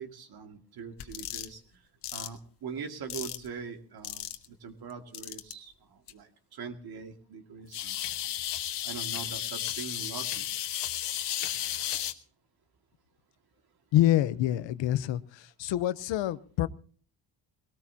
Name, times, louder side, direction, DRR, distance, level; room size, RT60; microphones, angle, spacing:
voice 1, 0.0-1.6 2.1-4.3 4.6-8.0 8.8-10.5, right 6 dB, 55° right, 5 dB, 2.3 m, -42 dB
sound 1, 1.0-1.5 2.0-2.3 3.1-3.5 4.0-4.5 5.1-5.5 6.1-6.2 7.7-12.1, left 12 dB, 70° left, 1.5 m, -34 dB
voice 2, 13.9-16.7, left 13 dB, 90° left, 15 dB, 1.0 m, -26 dB
21.0 x 18.0 x 2.9 m, 0.42 s
cardioid pair, 140°, 43 cm